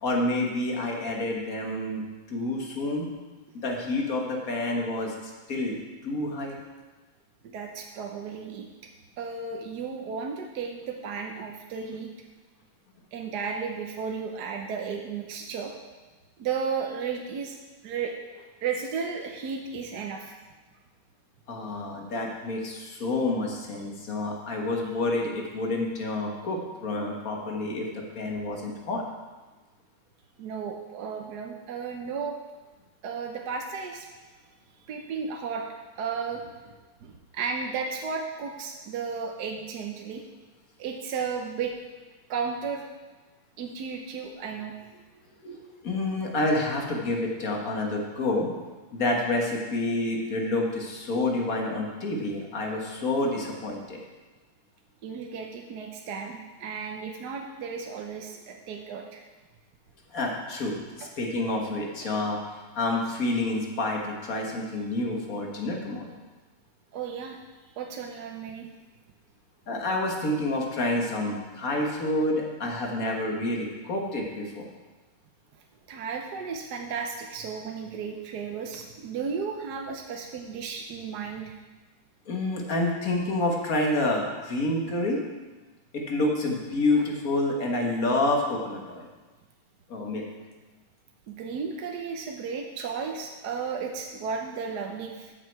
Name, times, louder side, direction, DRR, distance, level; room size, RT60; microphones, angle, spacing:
voice 1, 0.0-2.0 2.3-3.1 3.6-5.8 6.0-6.5 21.5-27.9 28.1-29.0 45.4-48.5 48.9-54.0 60.1-62.4 62.8-66.1 69.7-74.7 82.3-85.2 85.9-89.1 89.9-90.2, left 2 dB, 50° left, 0 dB, 1.9 m, -28 dB
voice 2, 7.5-8.7 9.2-12.1 13.1-15.7 16.4-17.6 17.8-20.3 30.4-32.3 33.0-34.1 34.9-35.6 36.0-36.5 37.0-40.2 40.8-41.7 42.3-42.8 43.6-44.7 55.0-59.2 62.0-62.1 66.9-67.4 67.8-68.7 75.9-81.5 91.3-95.3, right 5 dB, 65° right, 2 dB, 1.3 m, -34 dB
13.0 x 6.5 x 4.6 m, 1.2 s
omnidirectional pair, 2.0 m